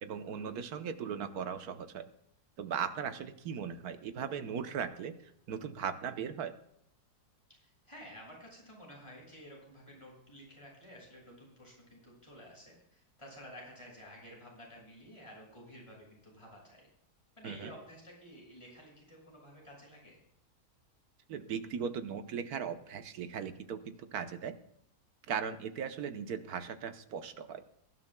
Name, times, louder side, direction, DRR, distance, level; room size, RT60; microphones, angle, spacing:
voice 1, 0.0-2.0 2.6-5.1 5.5-6.5 17.4-17.7 21.3-24.5 25.3-27.6, right 7 dB, 70° right, 10 dB, 1.4 m, -38 dB
voice 2, 7.6-16.9 17.4-20.2, equal, 20° left, -3 dB, 6.5 m, -52 dB
23.0 x 11.5 x 2.2 m, 0.75 s
omnidirectional pair, 1.7 m